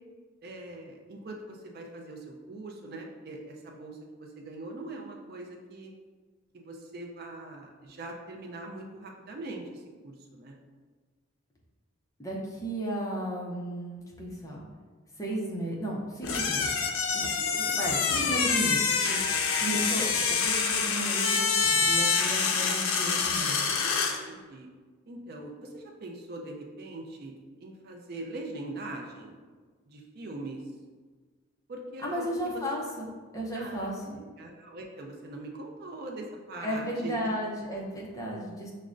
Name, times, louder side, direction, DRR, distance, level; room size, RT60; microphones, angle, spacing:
voice 1, 0.4-5.9 6.5-10.6 17.3-18.3 24.0-24.7 25.1-27.3 27.6-29.4 29.9-30.6 31.7-32.6 33.5-37.2, right 2 dB, 50° right, 1 dB, 0.4 m, -42 dB
voice 2, 12.2-14.7 15.2-16.7 17.1-17.2 17.7-19.2 19.6-23.8 32.0-34.2 36.6-38.7, equal, 15° left, -3 dB, 0.5 m, -34 dB
sound 1, 16.2-24.2, left 5 dB, 85° left, 0.4 m, -26 dB
6.0 x 2.1 x 2.5 m, 1.4 s
head